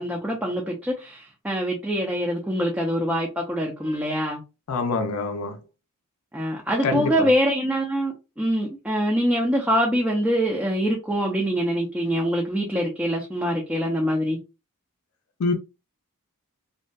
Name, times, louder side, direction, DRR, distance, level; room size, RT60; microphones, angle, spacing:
voice 1, 0.0-4.4 6.3-14.4, equal, 5° right, 0.3 m, -24 dB
voice 2, 4.7-5.6 6.8-7.3 15.4-15.5, left 3 dB, 65° left, 0.4 m, -25 dB
2.5 x 2.2 x 2.2 m
head